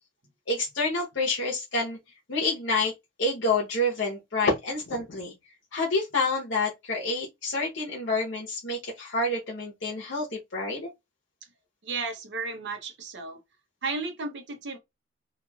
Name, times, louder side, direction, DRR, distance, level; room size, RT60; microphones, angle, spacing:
voice 1, 0.5-2.0 2.3-2.9 3.2-5.3 5.7-10.9, left 2 dB, 65° left, 0.8 m, -28 dB
voice 2, 11.8-13.4 13.8-14.8, right 3 dB, 60° right, 0.6 m, -33 dB
3.0 x 2.3 x 2.2 m
head